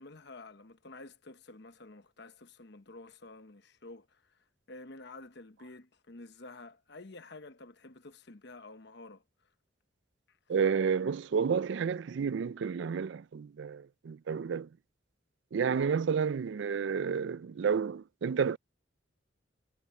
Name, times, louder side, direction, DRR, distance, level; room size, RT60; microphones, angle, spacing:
voice 1, 0.0-4.2 4.7-9.2 10.3-10.4, left 2 dB, 55° left, 1.0 m, -50 dB
voice 2, 10.5-14.7 15.5-18.6, right 6 dB, 60° right, 0.4 m, -30 dB
head